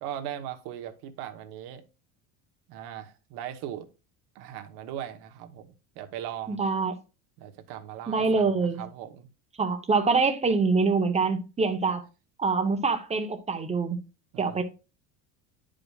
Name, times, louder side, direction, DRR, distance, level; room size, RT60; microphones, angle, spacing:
voice 1, 0.0-1.8 2.7-3.9 4.3-5.7 5.9-6.6 7.4-8.5 8.8-9.3 14.3-14.6, right 10 dB, 70° right, 1.2 m, -38 dB
voice 2, 6.5-6.9 8.1-8.8 9.6-12.0 12.4-14.0 14.4-14.6, right 4 dB, 15° right, 0.9 m, -25 dB
10.5 x 5.1 x 2.4 m
cardioid pair, 135°, 41 cm